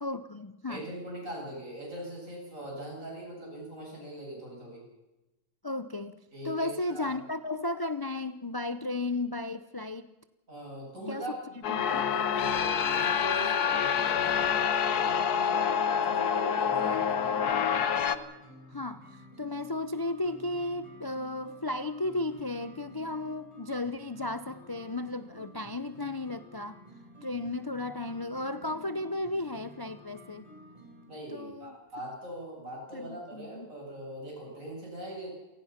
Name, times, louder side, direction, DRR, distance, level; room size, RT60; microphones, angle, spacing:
voice 1, 0.0-0.8 5.6-10.1 11.1-11.2 11.7-12.0 18.7-26.8 27.2-30.5 31.3-31.8 32.9-33.7, left 2 dB, 40° left, 11 dB, 0.3 m, -34 dB
voice 2, 0.7-4.8 6.3-7.2 10.5-11.3 11.8-17.4 31.1-35.3, right 1 dB, 55° right, -2 dB, 8.6 m, -41 dB
sound 1, 11.6-18.2, left 7 dB, 80° left, 1.5 m, -27 dB
sound 2, 16.6-31.0, equal, 20° right, 4.8 m, -52 dB
28.5 x 18.0 x 5.9 m, 1.0 s
omnidirectional pair, 1.6 m